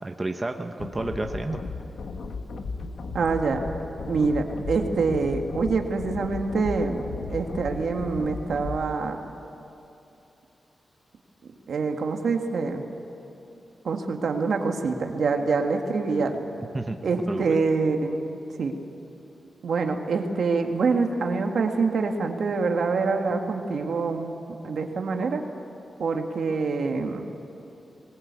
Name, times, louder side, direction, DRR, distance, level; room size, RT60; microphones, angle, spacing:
voice 1, 0.0-1.6 16.7-17.0 17.3-17.6, right 2 dB, 20° right, 5 dB, 0.8 m, -30 dB
sound 1, 0.8-8.8, left 4 dB, 70° left, 1.3 m, -35 dB
voice 2, 3.1-3.6 4.1-9.2 11.7-12.8 13.8-16.4 17.0-18.2 18.6-18.7 19.6-24.3 24.6-25.4 26.0-27.2, right 4 dB, 70° right, 4 dB, 1.8 m, -25 dB
21.0 x 19.5 x 8.3 m, 2.9 s
wide cardioid pair, 150°, 0 cm